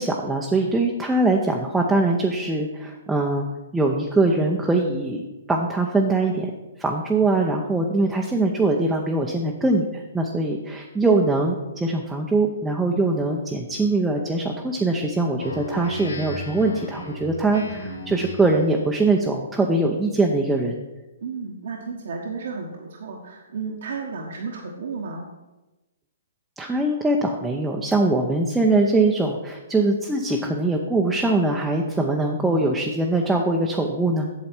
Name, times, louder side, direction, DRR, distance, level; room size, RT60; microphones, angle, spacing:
voice 1, 0.0-3.5 3.7-6.5 6.8-20.7 26.6-34.3, right 2 dB, 5° right, 0 dB, 0.8 m, -22 dB
Speech synthesizer, 15.4-18.7, left 1 dB, 80° left, 1.4 m, -36 dB
voice 2, 21.2-25.3, right 4 dB, 65° right, -1 dB, 1.2 m, -33 dB
8.4 x 6.8 x 4.5 m, 1.1 s
hypercardioid pair, 130°, 0 cm